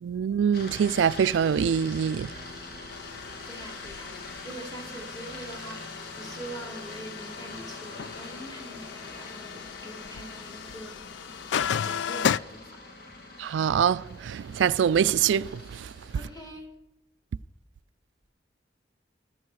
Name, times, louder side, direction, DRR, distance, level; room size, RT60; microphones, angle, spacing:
voice 1, 0.0-2.3 13.4-15.9, right 8 dB, 85° right, 0.3 m, -24 dB
sound 1, 0.5-16.5, left 3 dB, 60° left, 1.9 m, -44 dB
sound 2, 2.9-12.4, left 8 dB, 75° left, 0.3 m, -35 dB
voice 2, 3.5-4.1 4.4-11.1 11.8-12.8 16.1-16.7, right 1 dB, 20° left, 2.6 m, -43 dB
14.0 x 11.5 x 4.7 m
head